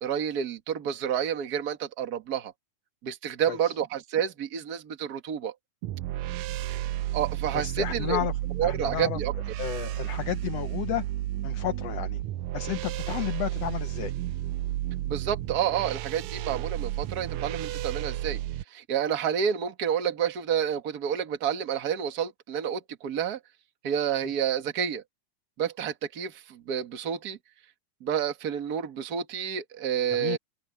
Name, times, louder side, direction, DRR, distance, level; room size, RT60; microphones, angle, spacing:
voice 1, 0.0-2.5 3.0-5.5 7.1-8.2 8.6-9.3 15.1-18.4 18.7-23.4 23.8-25.0 25.6-27.4 28.0-30.4, right 8 dB, 40° right, 1.6 m, -29 dB
sound 1, 5.8-18.6, right 14 dB, 80° right, 1.8 m, -32 dB
voice 2, 7.5-8.3 8.6-9.2 9.6-11.0 11.4-12.2 12.5-14.1 30.1-30.4, left 13 dB, 75° left, 1.5 m, -32 dB
open air
omnidirectional pair, 3.6 m